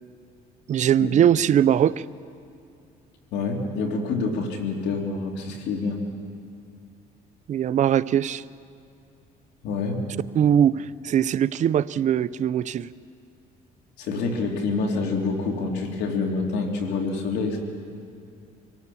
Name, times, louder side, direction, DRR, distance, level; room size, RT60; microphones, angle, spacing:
voice 1, 0.7-1.9 7.5-8.4 10.4-12.9, right 9 dB, 45° right, 16 dB, 0.5 m, -21 dB
voice 2, 3.3-6.0 9.6-10.0 14.0-17.6, left 4 dB, 80° left, 2 dB, 3.1 m, -27 dB
25.0 x 18.0 x 7.1 m, 2.5 s
cardioid pair, 110°, 17 cm